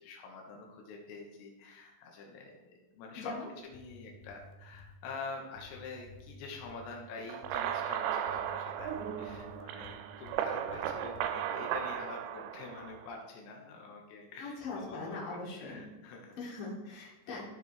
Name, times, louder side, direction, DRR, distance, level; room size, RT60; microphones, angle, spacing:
voice 1, 0.0-3.3 3.6-16.3, left 4 dB, 90° left, 0 dB, 3.4 m, -46 dB
voice 2, 3.2-3.5 14.4-15.8 16.4-17.4, left 3 dB, 55° left, -4 dB, 3.7 m, -41 dB
sound 1, 3.6-5.0 5.6-7.0 7.4-7.8 8.3-10.4 10.7-11.3, left 4 dB, 70° left, 2.3 m, -53 dB
sound 2, 7.3-13.1, right 9 dB, 90° right, 3.0 m, -36 dB
14.0 x 6.7 x 3.1 m, 1.0 s
omnidirectional pair, 5.1 m